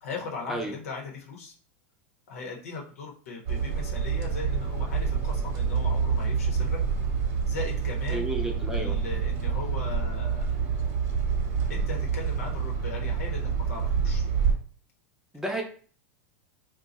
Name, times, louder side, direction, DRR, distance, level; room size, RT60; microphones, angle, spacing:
voice 1, 0.0-1.5 2.3-6.8 7.4-8.3 8.7-10.5 11.7-14.2, left 4 dB, 85° left, -1 dB, 1.0 m, -38 dB
sound 1, 3.5-14.5, right 6 dB, 60° right, 1.0 m, -27 dB
voice 2, 8.1-9.0 15.3-15.6, right 1 dB, 5° right, 1 dB, 0.7 m, -31 dB
2.6 x 2.3 x 4.0 m, 0.43 s
supercardioid pair, 120°, 8 cm